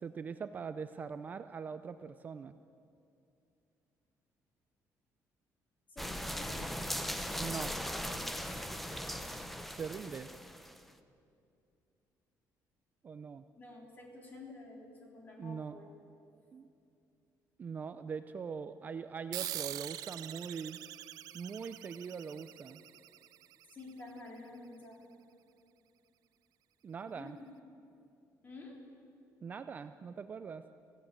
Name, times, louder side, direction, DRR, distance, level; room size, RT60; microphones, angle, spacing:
voice 1, 0.0-2.6 7.4-7.7 9.8-10.3 13.0-13.4 15.4-15.8 16.5-16.7 17.6-20.8 21.3-22.8 26.8-27.4 29.4-30.6, right 6 dB, 25° right, 10 dB, 0.4 m, -42 dB
voice 2, 5.9-6.7 13.6-15.9 23.7-25.0 27.1-27.5 28.4-28.8, left 2 dB, 30° left, 0 dB, 3.6 m, -50 dB
sound 1, 6.0-10.8, equal, ahead, 0.8 m, -39 dB
sound 2, 19.3-24.3, right 13 dB, 70° right, 0.6 m, -44 dB
26.0 x 16.0 x 7.6 m, 2.6 s
cardioid pair, 180°, 7 cm